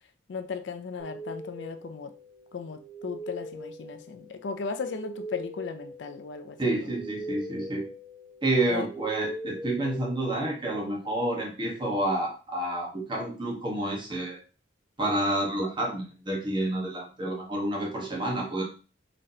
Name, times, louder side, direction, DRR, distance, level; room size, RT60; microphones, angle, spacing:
voice 1, 0.3-2.1 2.5-6.6 8.7-8.9, left 5 dB, 65° left, 0.4 m, -36 dB
sound 1, 1.0-10.7, right 1 dB, 5° right, 0.6 m, -42 dB
voice 2, 6.6-7.9 8.4-14.4 15.0-18.6, right 1 dB, 25° right, 1.2 m, -29 dB
4.0 x 3.1 x 2.7 m
head